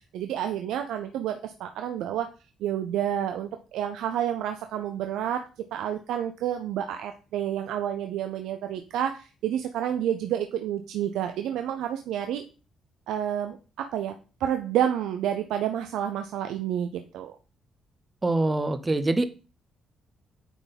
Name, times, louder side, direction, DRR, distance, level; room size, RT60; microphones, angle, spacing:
voice 1, 0.1-2.3 2.6-5.4 5.7-12.4 13.1-14.1 14.4-17.3, right 10 dB, 85° right, 0.5 m, -29 dB
voice 2, 18.2-19.2, right 2 dB, 20° right, 0.8 m, -24 dB
9.1 x 3.6 x 4.1 m
cardioid pair, 90°, 0 cm